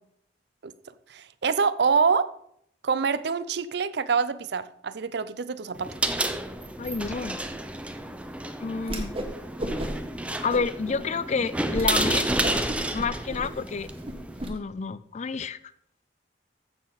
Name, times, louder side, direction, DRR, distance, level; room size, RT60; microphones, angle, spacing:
voice 1, 1.1-2.3 2.8-5.9, right 5 dB, 65° right, 0.5 m, -25 dB
sound 1, 5.7-14.5, right 1 dB, 5° right, 0.6 m, -30 dB
voice 2, 6.8-7.4 8.6-9.2 10.4-12.3 12.9-13.9 14.5-15.6, left 5 dB, 40° left, 0.4 m, -29 dB
Whoosh swoosh swish, 8.8-9.3 9.6-10.1 10.5-11.0 11.4-11.5 11.7-11.9 12.3-14.5, right 1 dB, 30° right, 1.4 m, -33 dB
14.5 x 6.2 x 4.0 m
head